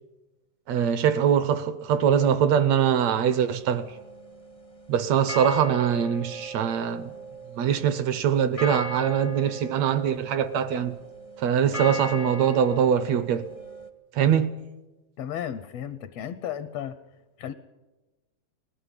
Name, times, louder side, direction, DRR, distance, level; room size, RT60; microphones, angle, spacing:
voice 1, 0.7-4.0 4.9-7.1 7.5-11.0 11.4-13.5 14.1-14.6, right 8 dB, 70° right, 1.7 m, -23 dB
sound 1, 3.5-4.8 5.3-13.9, right 1 dB, 45° left, 0.4 m, -38 dB
voice 2, 15.2-17.0 17.4-17.5, left 9 dB, 75° left, 1.5 m, -34 dB
20.0 x 15.0 x 9.9 m
omnidirectional pair, 3.7 m